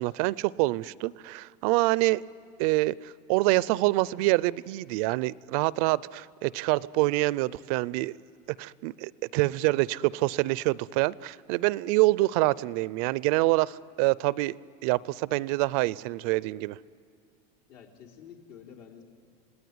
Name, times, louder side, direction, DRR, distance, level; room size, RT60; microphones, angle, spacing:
voice 1, 0.0-2.2 2.6-8.2 8.6-14.5 14.8-16.8, right 20 dB, 60° right, 21 dB, 0.5 m, -26 dB
voice 2, 17.7-19.0, left 8 dB, 70° left, 1 dB, 3.7 m, -49 dB
27.0 x 18.5 x 9.6 m, 2.3 s
supercardioid pair, 140°, 21 cm